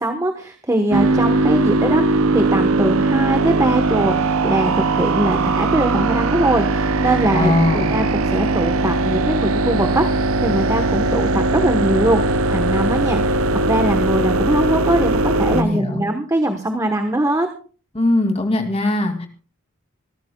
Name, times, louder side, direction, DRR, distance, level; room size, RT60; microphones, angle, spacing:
voice 1, 0.0-17.5, right 1 dB, 15° right, 5 dB, 1.2 m, -21 dB
sound 1, 0.9-15.6, right 2 dB, 70° right, 0.6 m, -19 dB
voice 2, 7.3-7.9 15.5-16.1 17.9-19.3, left 1 dB, 30° left, 5 dB, 2.6 m, -20 dB
25.5 x 13.5 x 2.3 m, 0.39 s
head